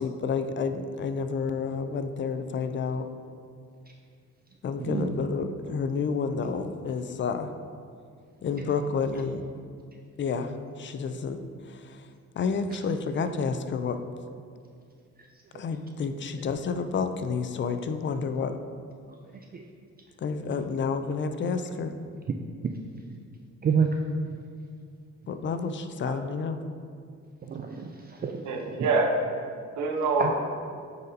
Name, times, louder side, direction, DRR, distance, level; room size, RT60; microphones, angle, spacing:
voice 1, 0.0-3.0 4.6-7.5 8.4-9.5 10.2-11.4 11.6-12.1 12.4-14.0 15.5-18.6 20.2-21.9 25.3-26.6, left 5 dB, 40° left, 9 dB, 0.4 m, -30 dB
voice 2, 4.8-5.1 19.5-19.6 23.6-23.9 27.5-28.4 30.2-30.3, right 6 dB, 30° right, 2 dB, 0.4 m, -27 dB
voice 3, 28.4-29.4 29.8-30.3, right 3 dB, 75° right, 3 dB, 0.8 m, -26 dB
9.0 x 4.1 x 2.7 m, 2.2 s
cardioid pair, 90°, 30 cm